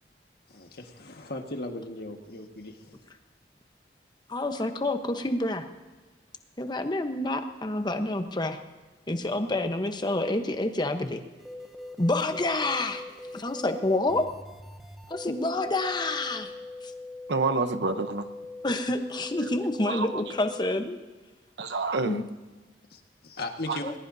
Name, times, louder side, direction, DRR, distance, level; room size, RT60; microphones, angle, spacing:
voice 1, 0.5-2.9 22.9-23.8, left 2 dB, 60° left, 4 dB, 1.6 m, -38 dB
voice 2, 4.3-5.6 6.6-8.6 9.1-11.2 12.0-13.0 13.3-14.3 15.1-16.5 16.8-16.9 18.6-21.0 22.0-22.2 23.8-23.9, left 2 dB, 25° left, 7 dB, 1.0 m, -28 dB
sound 1, 11.4-20.7, left 2 dB, ahead, 0.8 m, -42 dB
voice 3, 17.3-18.2 19.9-20.2 21.6-22.2 23.7-23.8, right 3 dB, 80° right, 9 dB, 0.9 m, -28 dB
20.0 x 20.0 x 2.7 m, 1.3 s
head